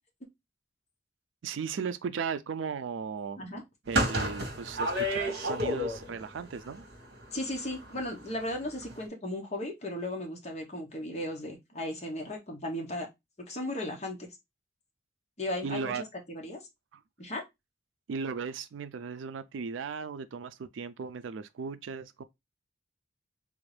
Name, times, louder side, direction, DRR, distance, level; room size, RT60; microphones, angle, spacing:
voice 1, 1.4-3.4 3.9-6.9 15.6-16.0 18.1-22.2, right 5 dB, 85° right, 0.4 m, -36 dB
sound 1, 3.9-6.3 6.5-8.1 8.4-8.5 8.8-9.0, equal, 70° right, 1.1 m, -31 dB
voice 2, 7.3-13.1 13.5-14.3 15.4-16.6 17.2-17.4, left 1 dB, 35° left, 0.9 m, -36 dB
3.5 x 2.6 x 3.2 m
head